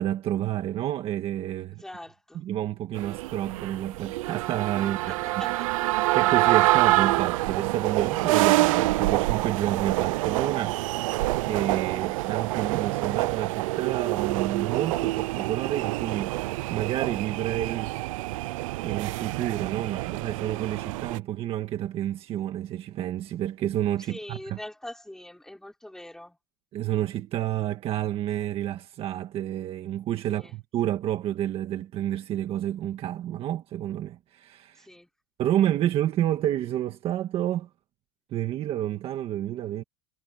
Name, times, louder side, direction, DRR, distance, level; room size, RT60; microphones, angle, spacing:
voice 1, 0.0-1.8 2.3-5.2 6.1-18.0 18.8-24.6 26.7-34.9 35.4-37.7 38.3-39.8, right 12 dB, 35° right, 1.7 m, -30 dB
voice 2, 1.8-2.4 5.1-5.7 24.0-26.4 30.3-30.6 34.7-35.1, left 1 dB, 5° left, 6.0 m, -43 dB
sound 1, 2.9-21.2, right 19 dB, 85° right, 0.6 m, -26 dB
supercardioid pair, 155°, 17 cm